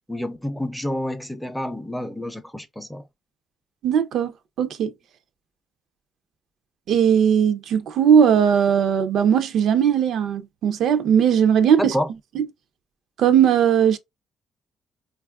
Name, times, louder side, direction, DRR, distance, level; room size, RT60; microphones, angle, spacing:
voice 1, 0.1-3.0 11.8-12.1, equal, 5° left, 0.5 m, -28 dB
voice 2, 3.8-4.9 6.9-11.9 12.4-12.5 13.2-14.0, right 8 dB, 75° right, 0.4 m, -18 dB
4.0 x 2.3 x 2.2 m
cardioid pair, 90°, 0 cm